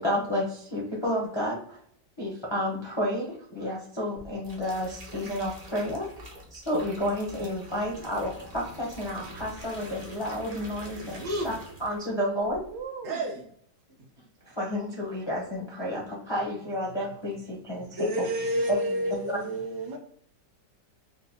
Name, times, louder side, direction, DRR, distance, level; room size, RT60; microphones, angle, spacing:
voice 1, 0.0-1.8 2.2-6.1 6.5-11.5 11.8-12.6 14.6-18.3 18.7-18.8 19.3-19.4, equal, 40° left, -4 dB, 0.4 m, -31 dB
sound 1, 4.2-12.2 12.5-12.8, right 1 dB, 40° right, 0.5 m, -45 dB
voice 2, 11.1-11.5 13.0-13.3 17.9-19.3, equal, 60° right, 1 dB, 0.9 m, -29 dB
voice 3, 12.6-13.2 18.9-20.0, right 5 dB, 75° right, 4 dB, 1.2 m, -37 dB
4.8 x 2.1 x 2.7 m, 0.65 s
omnidirectional pair, 1.9 m